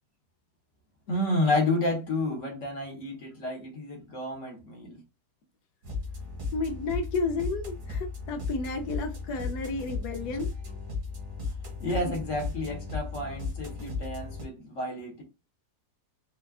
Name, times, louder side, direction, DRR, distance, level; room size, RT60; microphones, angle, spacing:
voice 1, 1.1-5.0 11.8-15.2, left 1 dB, 50° left, 1.4 m, -30 dB
sound 1, 5.8-14.4, left 4 dB, 80° right, 2.1 m, -36 dB
voice 2, 6.5-10.5 12.1-12.2, left 3 dB, 80° left, 1.3 m, -32 dB
4.4 x 2.3 x 2.3 m
omnidirectional pair, 1.7 m